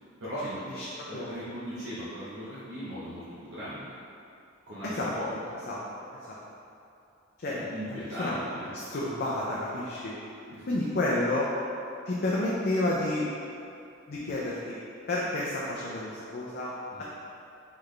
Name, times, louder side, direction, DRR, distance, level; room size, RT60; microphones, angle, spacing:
voice 1, 0.2-0.8 1.1-4.0 4.7-5.3 7.5-8.7 10.5-10.9 16.9-17.0, equal, 75° right, -12 dB, 0.8 m, -38 dB
voice 2, 7.9-8.4 8.7-10.2 10.7-11.5 12.1-13.3 14.1-14.8 15.1-16.7, left 1 dB, 50° left, -6 dB, 0.4 m, -30 dB
3.9 x 3.3 x 3.2 m, 2.6 s
head